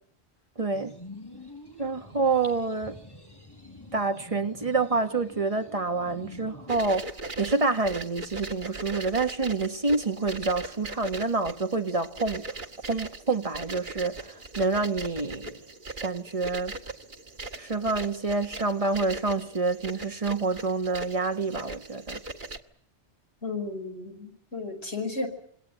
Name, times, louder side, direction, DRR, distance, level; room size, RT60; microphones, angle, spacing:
voice 1, 0.6-0.9 1.8-3.0 3.9-7.1 7.4-12.4 12.9-15.6 16.0-16.7 17.6-22.2, right 3 dB, 30° right, 1.6 m, -27 dB
sound 1, 0.7-6.8, left 1 dB, 20° left, 4.9 m, -47 dB
sound 2, 6.7-22.6, right 2 dB, 45° right, 1.9 m, -40 dB
voice 2, 23.4-25.3, left 3 dB, 75° left, 5.5 m, -33 dB
27.5 x 21.0 x 9.2 m
omnidirectional pair, 1.1 m